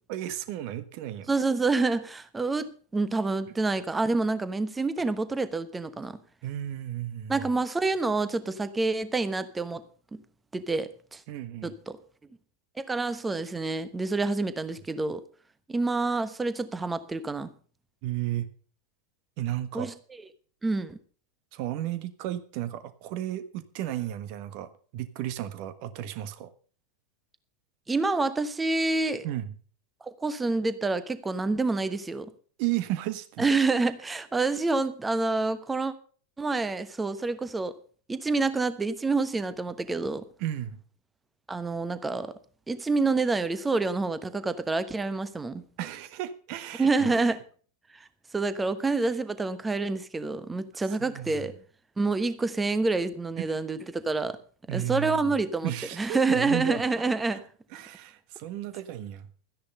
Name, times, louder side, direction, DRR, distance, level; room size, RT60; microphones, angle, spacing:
voice 1, 0.1-1.3 6.4-7.4 11.3-11.7 18.0-18.5 19.4-19.9 21.5-26.5 29.2-29.5 32.6-33.5 40.4-40.8 45.8-47.1 51.0-51.4 54.7-55.2 55.6-56.8 57.3-57.4 57.7-59.3, right 13 dB, 45° right, 1.3 m, -33 dB
voice 2, 1.3-6.2 7.3-9.8 10.1-10.2 10.5-11.2 11.6-12.0 12.8-15.2 15.7-17.5 19.7-19.9 20.6-21.0 27.9-29.3 30.0-32.3 33.4-35.9 36.4-37.7 38.1-40.2 41.5-42.3 42.7-45.6 46.8-47.4 48.3-51.5 52.0-54.4 54.7-55.7 56.0-57.4, right 3 dB, 10° right, 1.1 m, -27 dB
13.5 x 10.0 x 5.4 m
figure-of-eight pair, 90°, 0 cm